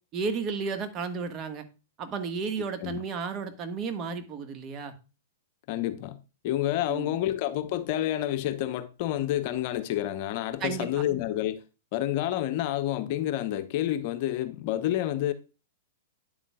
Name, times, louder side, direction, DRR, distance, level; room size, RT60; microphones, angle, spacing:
voice 1, 0.1-1.6 2.0-4.9 6.9-7.1 10.6-10.9, right 5 dB, 30° right, 1.5 m, -33 dB
voice 2, 5.7-6.2 6.4-11.6 11.9-15.3, left 13 dB, 50° left, 0.9 m, -29 dB
9.6 x 7.2 x 2.3 m
hypercardioid pair, 125°, 0 cm